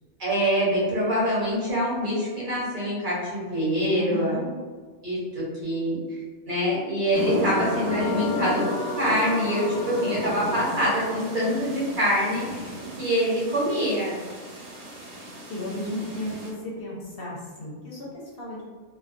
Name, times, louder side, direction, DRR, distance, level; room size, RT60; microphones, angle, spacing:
voice 1, 0.2-4.3 5.0-6.0 6.5-8.6 9.0-12.7 13.0-14.2, equal, 50° right, -7 dB, 0.8 m, -25 dB
voice 2, 3.9-4.5 15.5-18.6, left 1 dB, 60° left, -6 dB, 0.8 m, -34 dB
sound 1, 7.1-16.5, right 1 dB, 85° right, 1.1 m, -34 dB
sound 2, 7.6-12.8, left 3 dB, 90° left, 0.9 m, -34 dB
2.3 x 2.2 x 2.4 m, 1.5 s
omnidirectional pair, 1.2 m